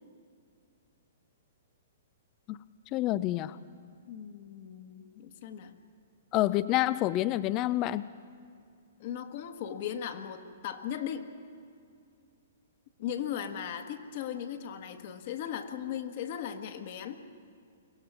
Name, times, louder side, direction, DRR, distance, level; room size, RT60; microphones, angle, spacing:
voice 1, 2.9-3.6 6.3-8.1, left 15 dB, 35° left, 17 dB, 0.5 m, -28 dB
voice 2, 4.1-5.8 9.0-11.3 13.0-17.2, left 9 dB, 50° left, 7 dB, 1.7 m, -37 dB
24.0 x 17.5 x 6.1 m, 2.3 s
hypercardioid pair, 120°, 0 cm